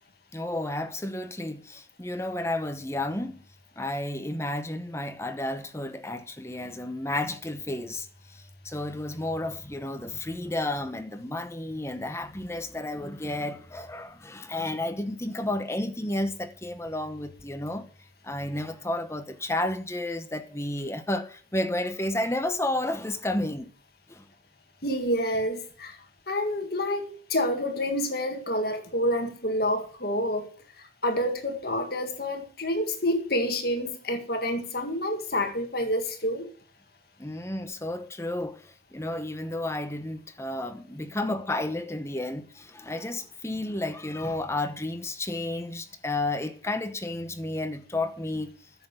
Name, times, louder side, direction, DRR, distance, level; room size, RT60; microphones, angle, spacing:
voice 1, 0.3-3.4 3.8-17.9 18.2-23.7 24.1-24.2 37.2-48.5, left 1 dB, 15° left, 1.0 m, -32 dB
voice 2, 24.8-26.0 26.3-30.5 31.0-36.5, left 1 dB, 55° left, 1.8 m, -28 dB
10.0 x 7.8 x 8.0 m
head